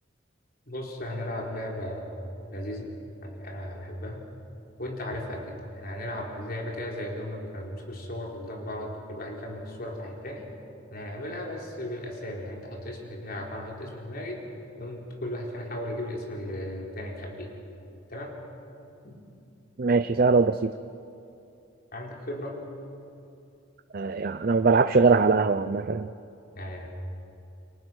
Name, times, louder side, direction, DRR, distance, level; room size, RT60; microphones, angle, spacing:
voice 1, 0.7-2.1 2.5-2.9 3.2-4.2 4.8-10.5 10.9-14.4 14.8-17.5 18.1-18.4 19.0-19.2 21.9-22.6 26.5-26.9, left 1 dB, 50° left, 0 dB, 4.2 m, -36 dB
voice 2, 19.8-20.7 23.9-26.1, right 4 dB, 50° right, 11 dB, 0.6 m, -21 dB
29.5 x 23.5 x 6.3 m, 2.6 s
head